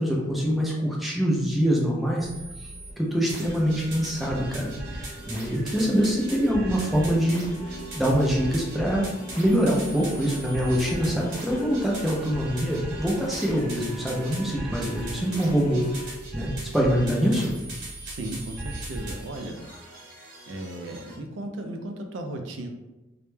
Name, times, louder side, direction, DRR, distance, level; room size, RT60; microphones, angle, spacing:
voice 1, 0.0-2.3 2.6-9.0 9.4-17.5, equal, ahead, -3 dB, 0.3 m, -25 dB
sound 1, 2.2-2.9 3.3-21.2, right 1 dB, 55° right, 0.8 m, -38 dB
sound 2, 2.7-16.0, right 1 dB, 30° left, 0.7 m, -44 dB
voice 2, 18.0-19.6 20.5-22.7, right 1 dB, 75° right, 5 dB, 0.3 m, -35 dB
2.1 x 2.1 x 3.1 m, 1.1 s
head